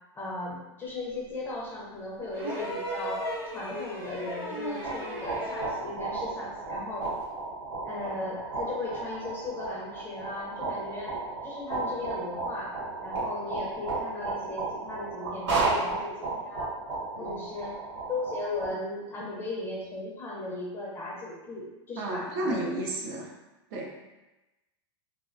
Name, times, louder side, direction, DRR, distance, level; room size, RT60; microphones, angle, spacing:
voice 1, 0.2-3.2 3.5-7.1 7.8-11.1 11.4-12.7 13.0-16.1 16.4-16.7 17.2-17.7 18.1-22.7, left 2 dB, 15° left, -5 dB, 0.5 m, -37 dB
sound 1, 2.3-5.9 7.2-7.3, equal, 15° right, 0.8 m, -35 dB
sound 2, 4.6-18.7, right 3 dB, 80° right, 1.0 m, -34 dB
voice 2, 22.0-23.3 23.7-24.0, right 1 dB, 50° right, -2 dB, 0.5 m, -33 dB
2.3 x 2.1 x 2.5 m, 1.0 s
supercardioid pair, 145°, 15 cm